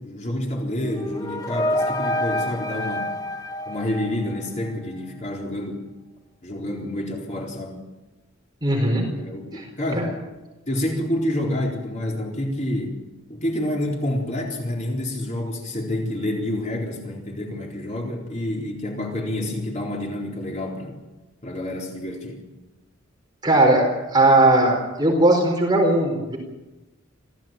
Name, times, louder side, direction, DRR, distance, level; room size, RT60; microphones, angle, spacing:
voice 1, 0.0-3.1 3.7-5.8 6.4-7.9 9.2-10.2 10.7-13.0 13.3-21.0 21.4-22.4, left 1 dB, 35° left, -1 dB, 4.0 m, -28 dB
sound 1, 0.8-4.7, left 1 dB, 15° left, 1.0 m, -28 dB
voice 2, 8.6-9.1 9.5-9.6 10.0-10.1 23.4-23.9 24.1-26.4, right 2 dB, 20° right, 1 dB, 4.5 m, -18 dB
27.0 x 17.0 x 9.1 m, 1.1 s
head